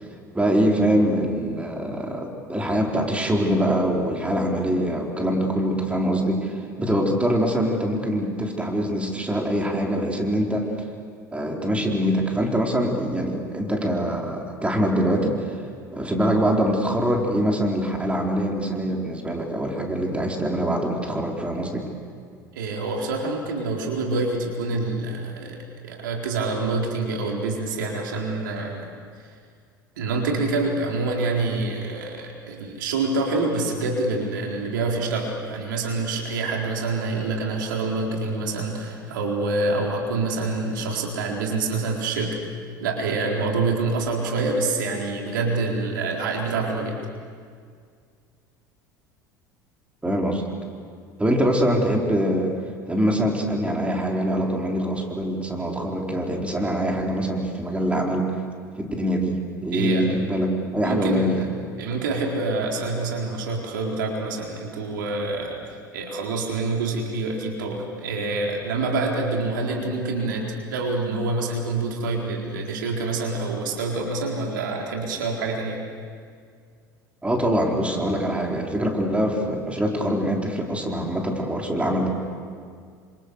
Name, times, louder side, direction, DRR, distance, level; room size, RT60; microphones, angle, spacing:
voice 1, 0.3-10.7 11.3-15.4 15.9-21.8 50.0-50.4 51.2-52.5 52.9-58.3 58.8-61.5 77.2-82.1, equal, 10° right, 1 dB, 4.7 m, -24 dB
voice 2, 22.5-25.6 25.8-28.9 30.0-42.4 42.8-47.0 59.7-60.1 60.8-61.5 61.8-75.8, right 3 dB, 75° right, 0 dB, 4.2 m, -26 dB
29.0 x 26.5 x 6.7 m, 2.1 s
hypercardioid pair, 70°, 11 cm